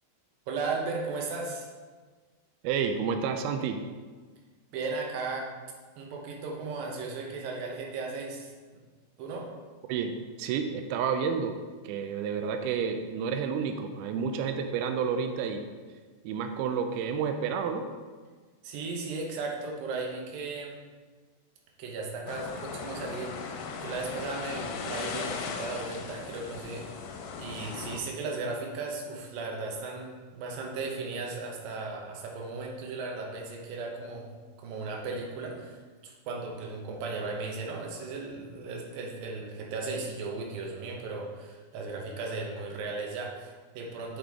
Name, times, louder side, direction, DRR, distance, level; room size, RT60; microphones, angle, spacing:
voice 1, 0.5-1.7 4.7-5.5 6.0-8.5 9.2-9.5 18.6-20.7 21.8-27.1 27.4-34.3 34.6-44.2, right 3 dB, 70° right, 0 dB, 2.4 m, -36 dB
voice 2, 2.6-3.8 9.9-11.6 11.8-15.7 16.2-17.8, right 6 dB, 90° right, 6 dB, 2.1 m, -30 dB
sound 1, 22.3-28.0, left 5 dB, 80° left, 2.5 m, -38 dB
7.2 x 6.6 x 3.5 m, 1.4 s
omnidirectional pair, 5.0 m